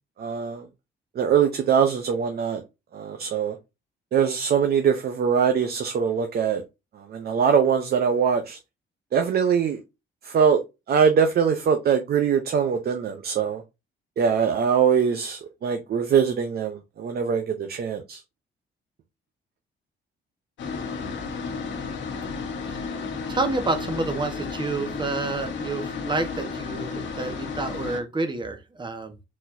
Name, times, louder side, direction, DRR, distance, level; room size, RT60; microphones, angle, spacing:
voice 1, 0.2-0.7 1.2-2.6 2.9-3.6 4.1-6.6 7.0-8.6 9.1-9.8 10.2-10.6 10.9-13.6 14.2-18.2, right 7 dB, 50° right, 0.7 m, -22 dB
sound 1, 20.6-28.0, left 5 dB, 70° left, 1.4 m, -33 dB
voice 2, 23.3-29.2, right 3 dB, 25° right, 1.1 m, -29 dB
4.2 x 4.2 x 2.6 m
cardioid pair, 90°, 20 cm